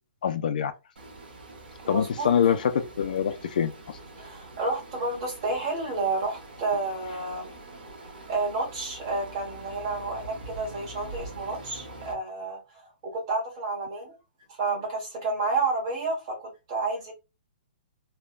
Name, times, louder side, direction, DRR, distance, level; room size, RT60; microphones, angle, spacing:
voice 1, 0.2-0.7 1.9-4.0, left 8 dB, 55° left, 0.3 m, -25 dB
sound 1, 0.9-12.1, right 2 dB, 65° right, 1.3 m, -44 dB
voice 2, 1.8-2.3 4.2-7.5 8.1-14.2 14.5-17.1, right 3 dB, 30° right, 1.4 m, -30 dB
3.3 x 2.2 x 2.3 m
hypercardioid pair, 170°, 6 cm